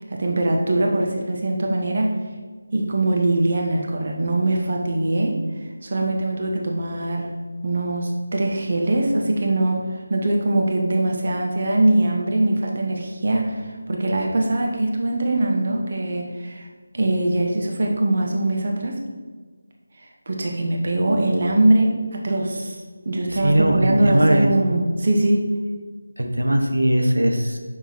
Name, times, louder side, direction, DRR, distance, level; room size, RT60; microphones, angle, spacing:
voice 1, 0.1-2.2 2.7-5.4 5.8-7.3 7.6-16.7 16.9-19.0 20.3-25.5, right 1 dB, 45° right, 1 dB, 1.0 m, -22 dB
voice 2, 23.3-24.5 26.2-27.6, right 1 dB, 75° right, 3 dB, 1.0 m, -19 dB
6.9 x 6.0 x 4.4 m, 1.5 s
figure-of-eight pair, 160°, 0 cm